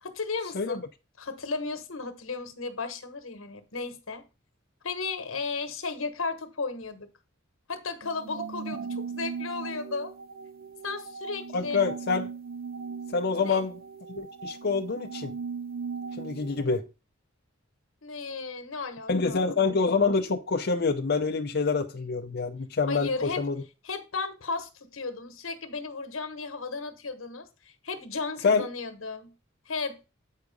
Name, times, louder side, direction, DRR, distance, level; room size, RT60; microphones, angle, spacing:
voice 1, 0.0-0.8 1.2-4.2 4.8-7.1 7.7-10.1 10.8-11.9 13.3-13.6 18.0-19.5 22.9-23.4 23.8-29.3 29.7-30.0, left 4 dB, 85° left, 1.2 m, -35 dB
sound 1, 8.0-16.6, right 5 dB, 45° right, 0.4 m, -38 dB
voice 2, 11.5-12.3 13.1-13.8 14.1-15.3 16.2-16.8 19.1-23.6 28.4-28.6, left 4 dB, 55° left, 0.7 m, -26 dB
8.3 x 4.8 x 5.2 m
head